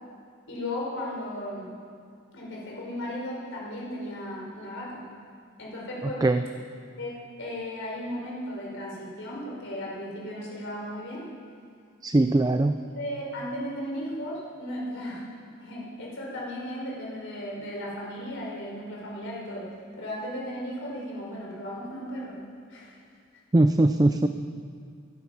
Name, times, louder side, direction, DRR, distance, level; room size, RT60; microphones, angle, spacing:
voice 1, 0.5-1.7 2.3-5.0 5.6-6.3 7.0-7.1 7.4-11.3 12.9-15.2 15.6-22.4 22.7-23.0, left 1 dB, 60° left, -4 dB, 5.5 m, -35 dB
voice 2, 12.0-12.8 23.5-24.3, right 2 dB, 15° right, 8 dB, 0.4 m, -20 dB
19.5 x 11.5 x 6.1 m, 2.3 s
head